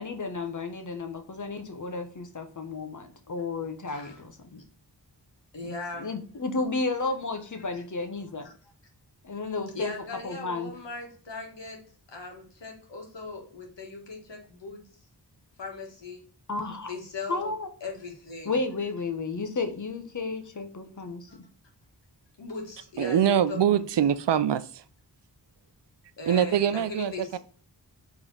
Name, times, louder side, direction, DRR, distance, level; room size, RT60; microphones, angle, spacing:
voice 1, 0.0-4.6 5.6-5.7 6.0-8.5 9.2-9.9 10.2-10.7 16.5-16.9 17.3-17.7 18.4-21.4, left 3 dB, 45° left, 8 dB, 1.1 m, -32 dB
voice 2, 3.9-4.2 5.5-6.2 7.5-7.6 8.4-8.5 9.7-11.8 12.1-14.8 15.6-16.2 16.8-17.5 17.8-18.6 21.3-21.4 22.4-23.8 26.2-27.4, left 3 dB, 80° left, 1 dB, 1.8 m, -39 dB
voice 3, 23.0-24.8 26.3-27.4, right 9 dB, 75° right, 14 dB, 0.6 m, -24 dB
5.0 x 3.6 x 5.5 m, 0.43 s
wide cardioid pair, 65°, 43 cm